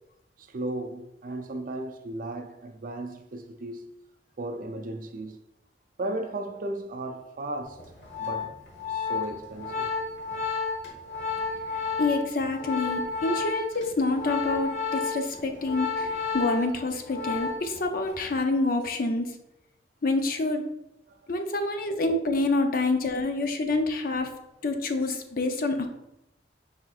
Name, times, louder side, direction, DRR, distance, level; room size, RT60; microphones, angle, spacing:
voice 1, 0.4-3.9 4.4-5.4 6.0-7.9 8.2-8.6 8.9-9.9 21.1-21.2, right 2 dB, 50° right, 0.4 m, -35 dB
Organ, 7.8-17.8 18.1-18.4, left 4 dB, 75° left, 1.2 m, -32 dB
voice 2, 12.0-19.3 20.0-20.6 21.3-24.3 24.6-25.9, left 2 dB, 55° left, 0.5 m, -27 dB
4.9 x 4.3 x 2.4 m
head